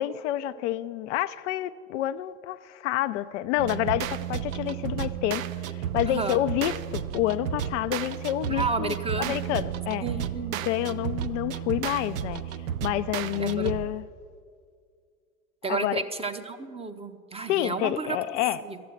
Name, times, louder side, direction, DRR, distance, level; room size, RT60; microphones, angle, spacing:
voice 1, 0.0-10.0 10.7-14.1 15.7-16.0 17.5-18.6, left 14 dB, 55° left, 0.5 m, -29 dB
sound 1, 3.6-14.1, right 10 dB, 70° right, 0.6 m, -33 dB
voice 2, 6.1-6.4 8.5-9.4 10.0-10.7 13.4-13.7 15.6-18.2 18.6-18.8, right 4 dB, 15° right, 0.8 m, -31 dB
12.5 x 7.7 x 9.2 m
figure-of-eight pair, 75°, 43 cm